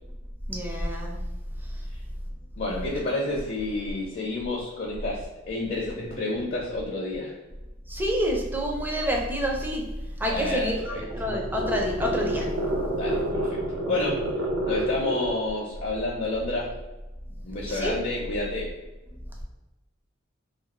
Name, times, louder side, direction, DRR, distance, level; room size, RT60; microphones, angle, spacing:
voice 1, 0.5-1.2 7.9-9.8 10.2-10.7 11.1-12.5 17.6-18.0, equal, 10° right, -1 dB, 0.4 m, -27 dB
voice 2, 2.6-7.4 10.3-11.2 12.9-13.6 13.9-16.7 17.4-18.7, left 2 dB, 45° left, -3 dB, 0.5 m, -30 dB
sound 1, 10.6-15.5, right 1 dB, 75° right, 0.6 m, -29 dB
2.6 x 2.4 x 2.9 m, 1.1 s
head